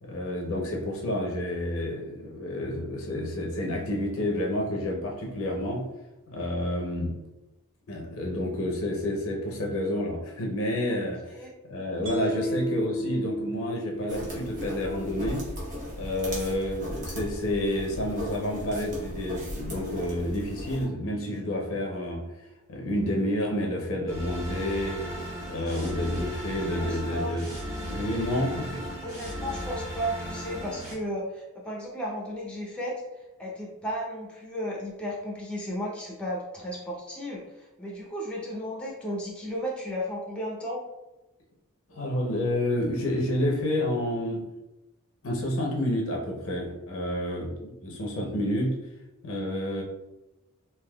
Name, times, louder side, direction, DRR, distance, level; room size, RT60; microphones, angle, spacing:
voice 1, 0.0-5.9 6.3-7.3 7.9-15.6 16.0-22.3 22.7-25.1 25.5-27.5 27.8-28.9 41.9-44.5 45.2-48.9 49.2-49.8, left 1 dB, 65° left, 0 dB, 0.7 m, -29 dB
Mallet percussion, 12.1-15.3, right 1 dB, 65° right, 0.6 m, -33 dB
sound 1, 14.1-20.8, equal, 35° right, 1.0 m, -37 dB
sound 2, 24.1-30.9, equal, 15° right, 1.3 m, -36 dB
voice 2, 26.8-27.3 28.3-28.6 29.0-33.0 33.4-40.8, equal, 5° left, -3 dB, 0.6 m, -34 dB
3.4 x 2.7 x 2.3 m, 0.98 s
head